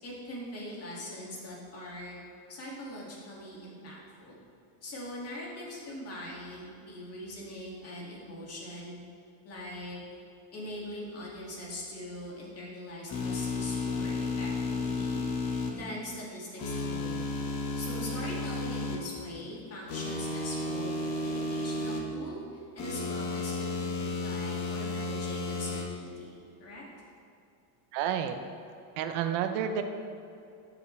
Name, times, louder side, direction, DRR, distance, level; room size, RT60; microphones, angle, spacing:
voice 1, 0.0-2.2 2.5-4.4 4.8-9.0 9.4-10.0 10.5-15.2 15.7-17.3 17.7-21.0 21.2-26.8, left 1 dB, 30° left, -4 dB, 2.3 m, -42 dB
sound 1, 13.1-15.7 16.6-19.0 19.9-22.0 22.8-25.8, left 3 dB, 50° left, 1.5 m, -33 dB
voice 2, 27.9-28.4 29.0-29.8, right 9 dB, 60° right, 8 dB, 0.8 m, -30 dB
12.0 x 7.3 x 3.3 m, 2.7 s
cardioid pair, 150°, 47 cm